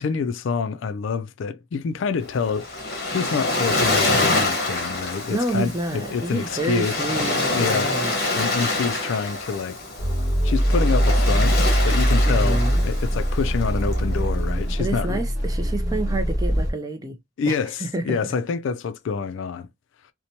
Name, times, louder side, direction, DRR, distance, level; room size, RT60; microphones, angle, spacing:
voice 1, 0.0-2.7 3.1-7.0 7.5-7.9 8.4-9.8 10.4-15.2 17.4-19.7, left 5 dB, 65° left, 0.3 m, -27 dB
Waves surf, 2.2-14.6, left 2 dB, 45° left, 1.0 m, -26 dB
voice 2, 5.3-8.1 12.2-12.8 14.8-17.2 17.5-18.2, right 2 dB, 15° right, 0.4 m, -29 dB
sound 1, 10.0-16.7, equal, 15° left, 1.1 m, -22 dB
2.9 x 2.1 x 2.6 m
head